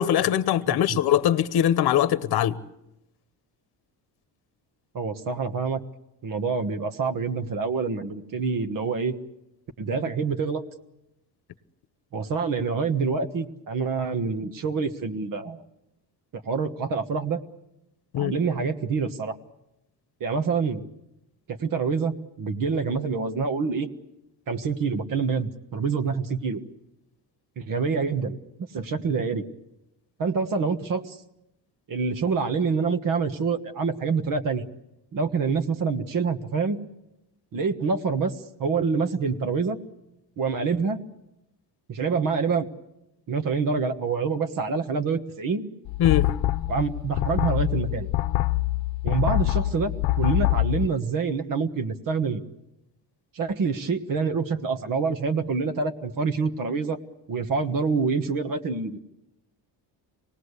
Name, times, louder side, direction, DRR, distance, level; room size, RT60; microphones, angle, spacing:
voice 1, 0.0-2.6 18.1-18.3 46.0-46.3, left 11 dB, 60° left, 1.0 m, -22 dB
voice 2, 4.9-5.8 6.2-9.2 9.8-10.6 12.1-15.6 16.4-17.4 18.2-19.3 20.2-20.8 21.5-23.9 24.5-26.6 27.6-28.4 28.7-29.4 30.2-31.2 31.9-34.6 35.1-36.8 37.5-38.3 38.6-39.8 40.4-41.0 41.9-42.7 43.3-45.7 46.7-48.1 49.0-52.4 53.3-57.0 57.3-59.0, right 5 dB, 50° right, 1.5 m, -26 dB
sound 1, 45.9-50.9, left 17 dB, 85° left, 0.8 m, -25 dB
26.5 x 19.0 x 8.2 m
cardioid pair, 175°, 43 cm